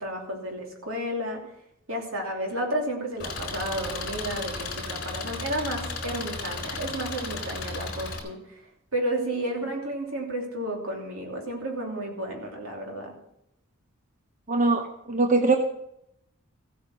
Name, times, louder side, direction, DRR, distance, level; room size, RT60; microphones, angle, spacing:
voice 1, 0.0-1.4 1.9-8.6 8.9-13.1, right 1 dB, 75° right, 1 dB, 3.0 m, -32 dB
Engine, 3.2-8.2, left 3 dB, 45° left, 3.5 m, -34 dB
voice 2, 14.5-15.6, right 3 dB, 35° right, 5 dB, 0.8 m, -22 dB
15.0 x 8.3 x 6.0 m, 0.78 s
head